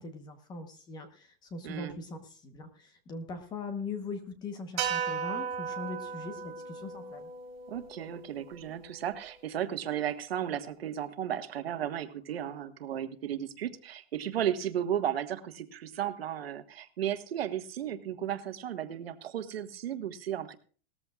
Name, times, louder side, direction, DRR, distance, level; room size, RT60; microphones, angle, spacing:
voice 1, 0.0-7.3, left 3 dB, 15° left, 7 dB, 1.1 m, -41 dB
voice 2, 1.6-2.0 7.7-20.6, right 10 dB, 75° right, 8 dB, 1.6 m, -34 dB
sound 1, 4.8-9.1, right 7 dB, 30° right, 4.6 m, -36 dB
19.0 x 14.0 x 2.4 m, 0.41 s
hypercardioid pair, 165°, 31 cm